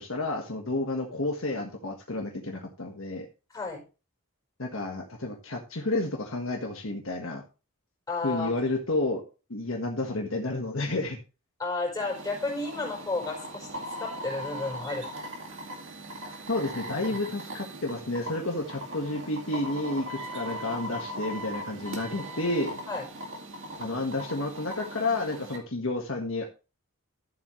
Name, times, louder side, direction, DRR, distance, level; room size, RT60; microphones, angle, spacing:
voice 1, 0.0-3.3 4.6-7.4 8.2-9.2 9.5-11.2 16.5-22.7 23.8-26.5, left 2 dB, 60° left, 2 dB, 1.5 m, -31 dB
voice 2, 8.1-8.5 11.6-15.0 17.1-17.2 22.9-23.1, left 3 dB, 15° left, -1 dB, 4.6 m, -32 dB
sound 1, 12.0-25.6, equal, 55° right, 2.3 m, -39 dB
12.5 x 7.6 x 3.2 m, 0.32 s
head